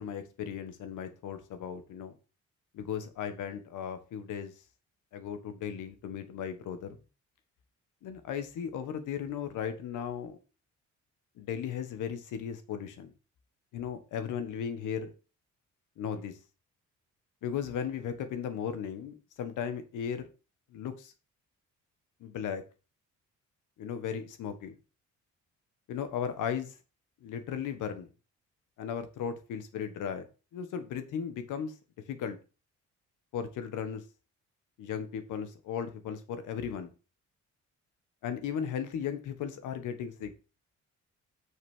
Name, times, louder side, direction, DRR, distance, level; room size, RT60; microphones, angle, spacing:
voice 1, 0.0-2.1 2.7-4.5 5.1-7.0 8.0-10.4 11.4-13.1 13.7-15.1 16.0-16.3 17.4-20.3 20.7-21.1 22.2-22.6 23.8-24.7 25.9-26.7 27.2-28.1 28.8-31.8 32.1-32.4 33.3-34.0 34.8-36.9 38.2-40.4, left 8 dB, 85° left, 9 dB, 1.6 m, -36 dB
6.5 x 5.5 x 6.3 m, 0.33 s
cardioid pair, 90°, 30 cm